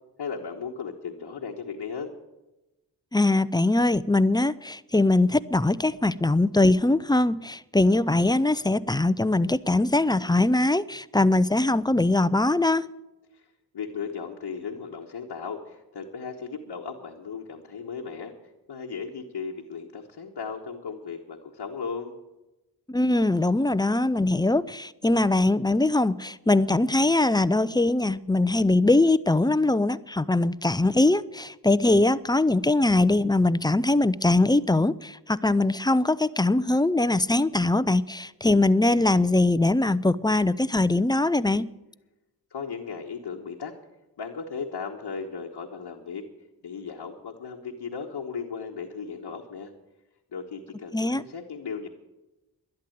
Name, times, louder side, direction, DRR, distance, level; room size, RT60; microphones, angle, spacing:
voice 1, 0.2-2.1 13.3-13.5 13.7-18.3 18.7-22.1 42.5-43.7 44.2-46.2 46.6-49.7 50.3-51.9, left 5 dB, 80° left, 1.3 m, -36 dB
voice 2, 3.1-12.9 22.9-41.7 50.9-51.2, left 2 dB, 10° left, 0.5 m, -22 dB
12.0 x 11.0 x 7.8 m
cardioid pair, 40°, 41 cm